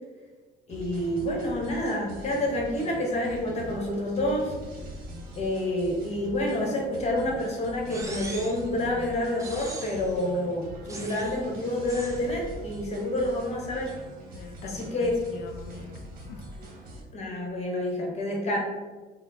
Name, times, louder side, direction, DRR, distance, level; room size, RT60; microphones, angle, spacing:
voice 1, 0.7-4.5 5.3-13.9 14.6-15.2 17.1-18.6, left 1 dB, 40° left, -1 dB, 0.9 m, -28 dB
sound 1, 0.7-17.0, right 1 dB, 60° right, 0.9 m, -43 dB
sound 2, 7.9-8.7 9.4-10.1 10.9-11.4 11.9-12.3, right 2 dB, 20° right, 0.6 m, -40 dB
voice 2, 10.2-10.6 14.3-16.4, left 5 dB, 85° left, 7 dB, 0.5 m, -44 dB
4.2 x 2.0 x 3.9 m, 1.3 s
cardioid pair, 110°, 17 cm